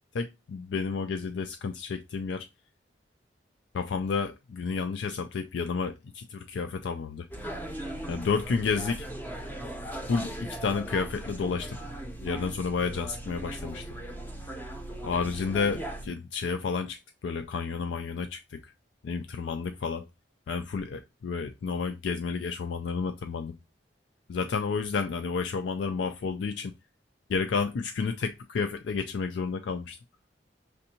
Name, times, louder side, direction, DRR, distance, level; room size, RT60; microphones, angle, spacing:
voice 1, 0.1-2.5 3.7-7.3 8.1-9.1 10.1-11.8 12.2-13.9 15.0-18.7 19.0-20.1 20.5-23.5 24.3-26.7 27.3-30.0, left 5 dB, 80° left, 0.4 m, -31 dB
sound 1, 7.3-16.1, right 1 dB, 10° left, 0.6 m, -38 dB
6.4 x 2.6 x 2.8 m
head